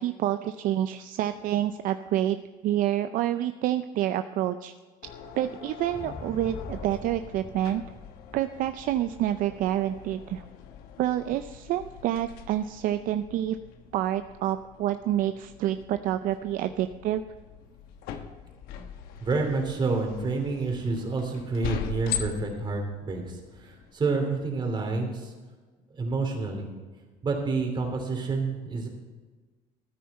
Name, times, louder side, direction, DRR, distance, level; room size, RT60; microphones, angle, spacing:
voice 1, 0.0-2.4 2.6-4.7 5.3-7.8 8.3-10.4 11.0-13.6 13.9-17.2, right 12 dB, 60° right, 10 dB, 0.5 m, -28 dB
sound 1, 5.0-23.9, left 9 dB, 75° left, 1.3 m, -42 dB
sound 2, 5.8-10.0 10.5-10.6, left 4 dB, 30° left, 1.9 m, -44 dB
voice 2, 19.2-23.2 23.6-25.3 26.0-26.7 27.2-28.9, right 3 dB, 30° right, 3 dB, 3.0 m, -28 dB
14.0 x 9.4 x 4.2 m, 1.4 s
cardioid pair, 120°, 15 cm